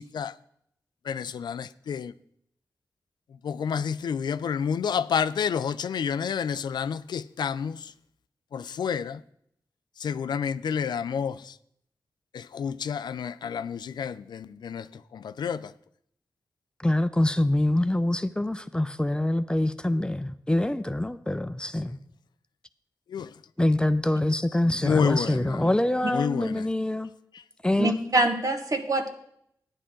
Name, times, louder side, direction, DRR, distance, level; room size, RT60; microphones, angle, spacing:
voice 1, 1.1-2.1 3.5-7.7 8.5-9.1 10.0-11.3 12.6-14.1 14.6-14.8 15.4-15.6 23.1-23.2 24.8-25.3 26.2-26.4, left 7 dB, 80° left, 0.4 m, -28 dB
voice 2, 16.8-22.0 23.6-27.1 27.6-28.1, left 1 dB, 10° left, 0.6 m, -25 dB
voice 3, 27.8-29.1, right 2 dB, 50° right, 1.5 m, -25 dB
11.5 x 9.8 x 3.8 m
cardioid pair, 45°, 7 cm